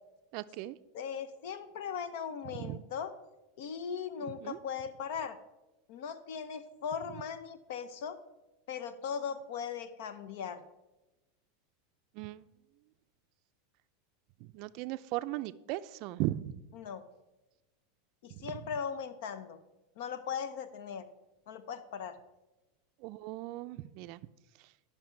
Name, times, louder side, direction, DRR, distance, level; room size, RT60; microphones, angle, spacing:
voice 1, 0.3-0.8 2.5-2.8 4.4-4.6 12.2-12.4 14.5-16.5 18.4-18.5 23.0-24.2, right 16 dB, 55° right, 14 dB, 0.4 m, -37 dB
voice 2, 0.9-3.1 3.6-5.4 5.9-8.2 8.7-10.6 16.7-17.0 18.2-19.6 20.0-21.0 21.5-22.2, left 7 dB, 70° left, 13 dB, 0.7 m, -38 dB
11.5 x 5.7 x 4.5 m, 1.1 s
supercardioid pair, 125°, 0 cm